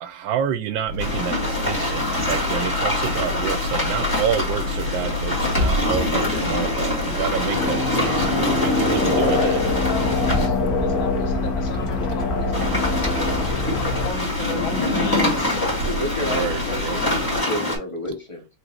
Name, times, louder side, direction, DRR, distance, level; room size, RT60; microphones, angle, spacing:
voice 1, 0.0-9.6 16.3-17.0, right 9 dB, 75° right, 1.2 m, -29 dB
sound 1, 0.9-17.4, left 3 dB, 55° right, 1.7 m, -30 dB
sound 2, 1.0-10.5 12.5-17.8, left 1 dB, 10° left, 1.6 m, -25 dB
sound 3, 7.5-14.1, left 3 dB, 55° left, 1.3 m, -24 dB
voice 2, 9.0-15.6, left 5 dB, 80° left, 1.6 m, -35 dB
voice 3, 15.8-18.5, left 1 dB, 30° left, 0.6 m, -31 dB
4.9 x 2.9 x 2.9 m
omnidirectional pair, 2.2 m